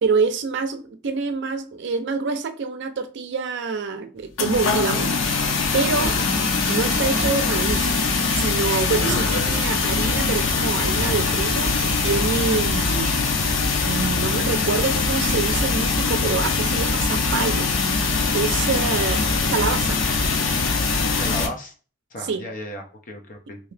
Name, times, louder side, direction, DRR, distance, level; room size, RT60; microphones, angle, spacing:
voice 1, 0.0-6.1 6.7-7.9 8.3-13.1 13.8-17.7 18.3-20.0 22.2-22.4, right 4 dB, 65° right, 0.5 m, -26 dB
sound 1, 4.4-21.5, left 4 dB, 90° left, 0.6 m, -22 dB
sound 2, 5.8-13.5, right 2 dB, 10° right, 1.4 m, -40 dB
voice 2, 6.0-6.3 21.2-21.7 22.1-23.6, left 1 dB, 45° left, 0.7 m, -34 dB
2.8 x 2.7 x 3.2 m
head